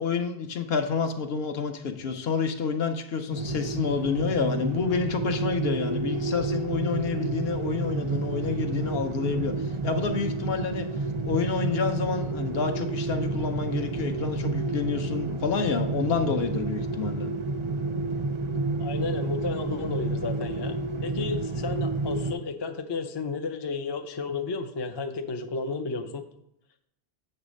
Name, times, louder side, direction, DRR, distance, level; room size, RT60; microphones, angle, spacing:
voice 1, 0.0-10.9 11.2-17.3, left 5 dB, 65° left, 6 dB, 0.9 m, -29 dB
sound 1, 3.3-22.3, right 3 dB, 45° right, 0.4 m, -30 dB
voice 2, 18.8-26.2, left 4 dB, 35° left, 6 dB, 0.4 m, -32 dB
8.0 x 3.2 x 6.3 m, 0.79 s
omnidirectional pair, 1.2 m